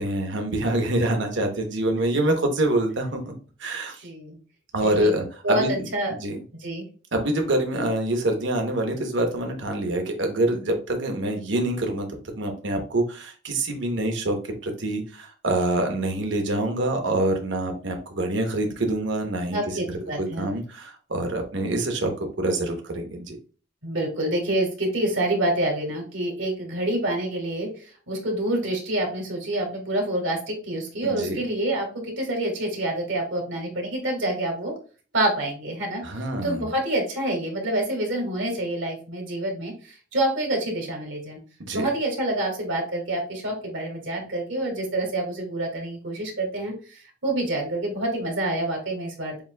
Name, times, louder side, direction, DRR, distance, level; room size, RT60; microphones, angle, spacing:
voice 1, 0.0-3.3 3.6-4.0 4.7-5.9 6.2-6.4 7.1-14.4 14.6-19.8 20.2-23.4 31.0-31.4 36.0-36.7 41.6-41.8, right 1 dB, 70° right, 4 dB, 0.9 m, -26 dB
voice 2, 4.0-4.4 4.8-5.1 5.4-6.1 6.6-6.8 19.5-20.5 23.8-34.7 35.1-36.0 36.4-41.4 41.7-49.4, right 1 dB, 90° right, 1 dB, 1.8 m, -27 dB
7.0 x 2.7 x 2.2 m, 0.38 s
head